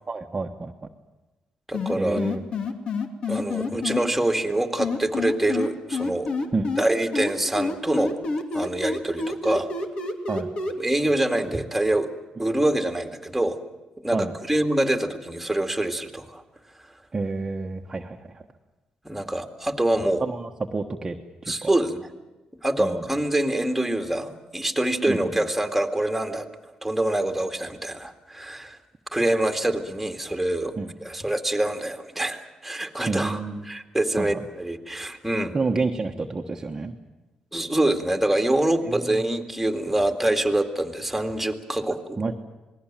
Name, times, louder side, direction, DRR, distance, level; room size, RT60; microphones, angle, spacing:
voice 1, 0.1-0.9 2.0-2.4 6.5-6.7 10.3-10.5 14.1-14.3 17.1-18.4 20.2-21.2 21.4-21.7 22.8-23.0 25.1-25.3 30.8-30.9 33.1-33.6 34.2-34.3 35.5-36.9 38.8-39.1 42.2-42.3, right 3 dB, 25° right, 1 dB, 1.4 m, -29 dB
sound 1, 1.7-4.0 4.8-6.8 7.1-10.7, left 4 dB, 50° left, 2.7 m, -27 dB
voice 2, 1.7-2.2 3.3-6.3 6.8-8.2 8.5-9.7 10.8-12.1 12.4-13.6 14.0-16.4 16.8-17.0 19.0-20.2 21.5-22.1 22.6-28.8 29.1-30.7 31.0-35.6 37.5-42.2, right 1 dB, 5° right, 5 dB, 2.3 m, -25 dB
27.5 x 20.0 x 7.6 m, 1.1 s
cardioid pair, 125°, 2 cm